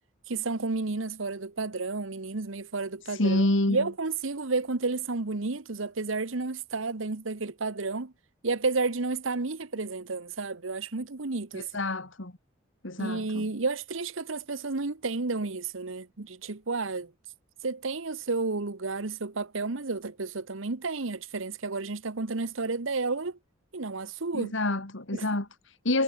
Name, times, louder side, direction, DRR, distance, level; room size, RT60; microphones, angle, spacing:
voice 1, 0.3-8.1 8.4-11.7 13.0-17.1 17.6-23.4 23.7-24.5 25.1-25.3, right 3 dB, 75° right, 1.2 m, -31 dB
voice 2, 3.0-3.8 11.5-12.3 12.8-13.4 24.3-26.0, left 1 dB, 65° left, 2.8 m, -28 dB
head